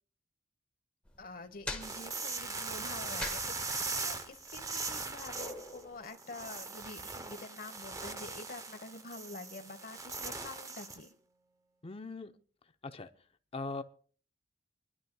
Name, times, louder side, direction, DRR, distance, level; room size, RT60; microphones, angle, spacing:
sound 1, 1.0-6.1, left 2 dB, 5° left, 1.3 m, -45 dB
voice 1, 1.2-11.1, left 3 dB, 50° left, 8 dB, 1.1 m, -47 dB
sound 2, 1.8-11.1, right 4 dB, 20° right, 0.7 m, -40 dB
voice 2, 11.8-12.3 12.8-13.1 13.5-13.8, left 3 dB, 30° left, 8 dB, 0.7 m, -40 dB
27.0 x 11.0 x 2.2 m, 0.42 s
head